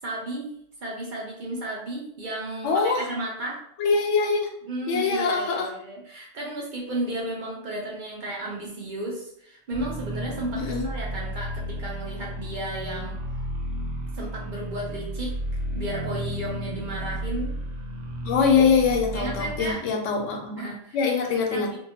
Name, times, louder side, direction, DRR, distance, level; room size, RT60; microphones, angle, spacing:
voice 1, 0.0-3.6 4.6-13.2 14.1-15.4 15.8-17.6 19.1-19.8 20.6-21.0 21.5-21.8, right 1 dB, 55° right, -3 dB, 0.6 m, -33 dB
voice 2, 2.6-3.1 3.8-4.5 4.9-5.7 10.5-10.9 18.2-20.6 20.9-21.7, left 5 dB, 90° left, 3 dB, 0.9 m, -23 dB
sound 1, 9.7-19.7, equal, 85° right, 0.9 m, -33 dB
2.6 x 2.1 x 2.7 m, 0.71 s
omnidirectional pair, 1.2 m